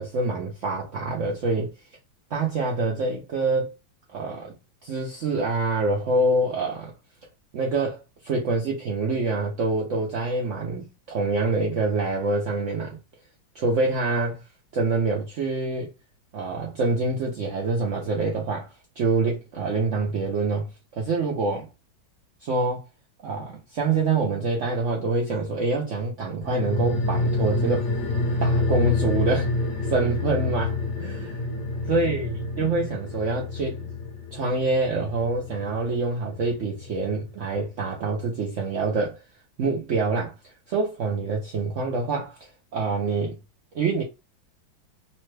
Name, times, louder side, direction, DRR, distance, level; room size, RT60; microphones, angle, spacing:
voice 1, 0.0-1.7 2.3-3.7 4.1-4.6 4.8-6.9 7.5-8.0 8.2-13.0 13.5-14.4 14.7-15.9 16.3-21.7 22.4-22.8 23.2-27.9 28.4-29.5 29.9-31.5 31.8-33.9 34.3-39.2 39.6-43.4 43.7-44.0, right 3 dB, 85° right, 0.6 m, -26 dB
sound 1, 26.4-37.3 37.6-37.7, left 2 dB, 65° left, 1.2 m, -28 dB
3.2 x 2.2 x 3.1 m
omnidirectional pair, 2.1 m